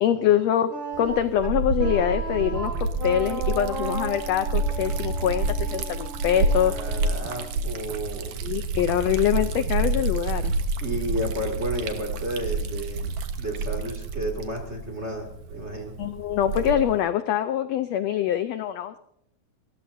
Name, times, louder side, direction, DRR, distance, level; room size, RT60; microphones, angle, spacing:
voice 1, 0.0-6.7 8.4-10.5 16.0-19.0, left 10 dB, 75° left, 10 dB, 1.6 m, -24 dB
Wind instrument woodwind instrument, 0.7-7.6, right 3 dB, 40° right, 2.9 m, -36 dB
Liquid, 0.9-17.0, right 3 dB, 80° right, 2.9 m, -29 dB
voice 2, 6.6-8.4 10.8-13.1 13.4-16.0, right 1 dB, 25° right, 2 dB, 2.4 m, -32 dB
29.5 x 15.0 x 2.7 m, 0.74 s
omnidirectional pair, 3.6 m